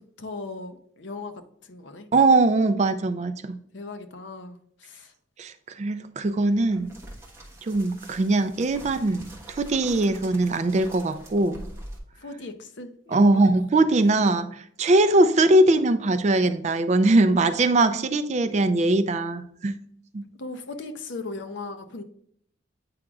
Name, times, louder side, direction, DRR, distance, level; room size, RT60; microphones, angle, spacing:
voice 1, 0.0-2.1 3.7-5.1 12.2-13.5 20.4-22.0, left 3 dB, 65° left, 0.6 m, -38 dB
voice 2, 2.1-3.6 5.4-6.9 7.6-11.6 13.1-19.8 20.1-20.2, right 2 dB, 35° right, 0.3 m, -21 dB
sound 1, 6.5-12.0, right 1 dB, 15° right, 1.1 m, -44 dB
8.5 x 4.9 x 2.3 m
head